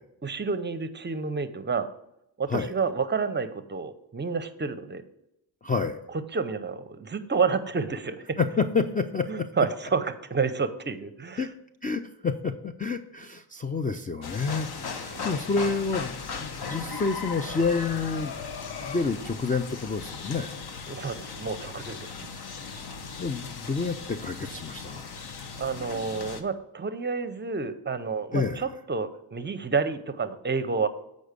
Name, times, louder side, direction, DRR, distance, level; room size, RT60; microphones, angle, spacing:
voice 1, 0.2-1.9 2.4-5.0 6.3-8.4 9.3-11.5 15.0-15.2 20.9-22.2 25.6-30.9, right 5 dB, 25° right, 11 dB, 0.6 m, -29 dB
voice 2, 5.6-6.0 8.4-9.5 11.4-11.5 11.8-18.3 18.8-20.5 23.2-25.1 28.3-28.6, left 4 dB, 20° left, 8 dB, 0.4 m, -29 dB
sound 1, 14.2-26.4, left 5 dB, 55° left, 1.0 m, -37 dB
7.9 x 5.3 x 5.1 m, 0.84 s
cardioid pair, 95°, 45 cm